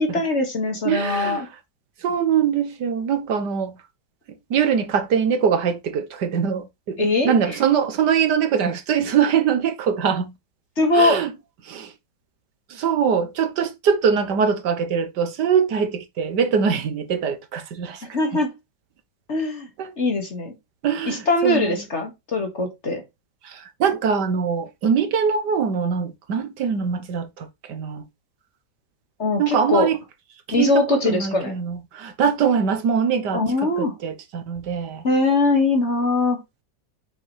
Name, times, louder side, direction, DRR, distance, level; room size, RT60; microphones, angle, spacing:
voice 1, 0.0-1.5 7.0-7.6 10.8-11.2 18.1-18.5 19.3-19.7 20.0-20.5 21.1-23.0 29.2-29.9 30.5-31.5 33.3-33.9 35.0-36.4, left 2 dB, 40° left, 2.2 m, -21 dB
voice 2, 0.8-1.5 2.0-3.7 4.5-10.3 10.8-11.3 11.6-11.9 12.7-18.0 19.8-19.9 20.8-21.8 23.4-28.0 29.4-30.0 30.6-35.0, right 7 dB, 75° right, 1.6 m, -23 dB
7.6 x 6.3 x 3.3 m
omnidirectional pair, 1.9 m